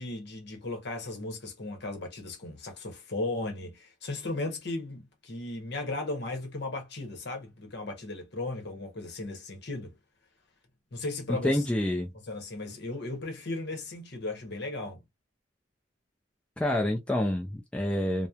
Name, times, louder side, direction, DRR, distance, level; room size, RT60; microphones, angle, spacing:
voice 1, 0.0-9.9 10.9-11.7 12.2-15.0, left 2 dB, 55° left, 0.9 m, -36 dB
voice 2, 11.3-12.1 16.6-18.3, left 1 dB, 5° left, 0.4 m, -28 dB
2.9 x 2.1 x 2.3 m
head